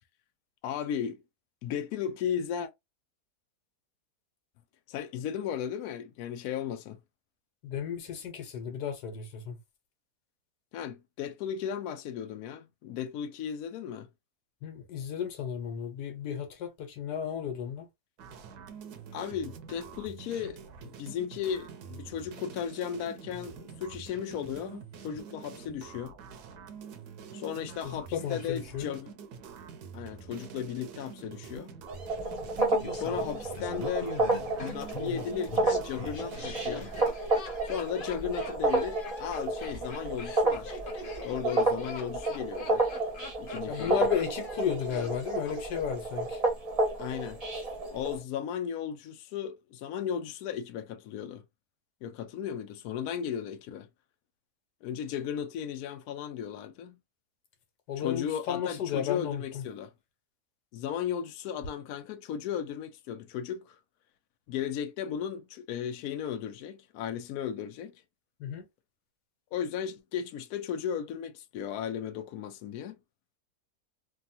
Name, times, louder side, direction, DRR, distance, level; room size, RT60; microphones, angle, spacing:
voice 1, 0.6-1.2 1.6-2.7 4.9-7.0 10.7-14.1 19.1-26.1 27.3-29.1 29.9-31.7 32.9-34.1 34.6-36.9 37.6-40.8 41.2-42.8 43.4-44.1 47.0-47.4 47.9-51.4 52.0-53.9 54.8-57.0 58.0-59.9 60.7-63.8 64.5-67.9 69.5-73.0, left 8 dB, 75° left, 1.0 m, -35 dB
voice 2, 7.6-9.6 14.6-17.9 27.8-28.9 43.7-46.4 57.9-59.6 68.4-68.7, left 8 dB, 90° left, 1.4 m, -33 dB
sound 1, 18.2-37.1, right 6 dB, 75° right, 1.2 m, -46 dB
sound 2, 31.9-48.2, right 2 dB, 30° right, 0.7 m, -31 dB
Laughter, 32.6-45.6 45.8-45.9, left 3 dB, 45° left, 0.7 m, -43 dB
3.4 x 2.3 x 2.6 m
omnidirectional pair, 1.7 m